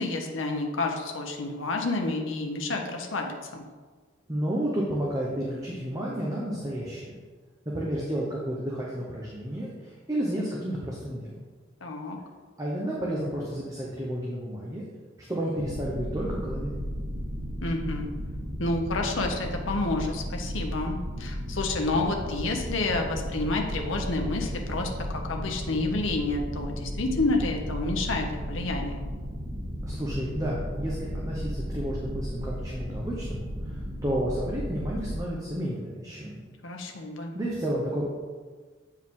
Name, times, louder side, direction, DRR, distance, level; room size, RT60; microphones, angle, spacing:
voice 1, 0.0-3.6 11.8-12.2 17.6-18.1 18.6-29.1 36.6-37.3, left 2 dB, 70° left, 2 dB, 0.9 m, -29 dB
voice 2, 4.3-7.2 7.7-11.2 12.6-14.8 15.3-16.7 29.8-36.4 37.3-38.0, right 1 dB, 15° right, -4 dB, 0.8 m, -31 dB
sound 1, 15.5-35.2, equal, 35° right, 1.6 m, -34 dB
7.8 x 4.7 x 3.7 m, 1.5 s
head